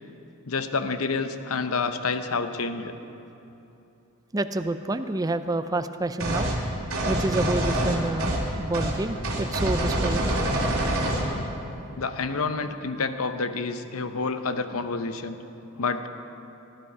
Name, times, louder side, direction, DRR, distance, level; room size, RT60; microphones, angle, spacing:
voice 1, 0.4-2.9 12.0-15.4 15.8-16.1, left 4 dB, 70° left, 9 dB, 0.7 m, -28 dB
voice 2, 4.3-6.5 7.1-10.4, right 2 dB, 15° right, 10 dB, 0.4 m, -28 dB
sound 1, 6.2-6.6 6.9-8.5 8.7-8.9 9.2-11.3, right 1 dB, 70° right, 2.7 m, -25 dB
18.0 x 12.0 x 4.8 m, 2.9 s
head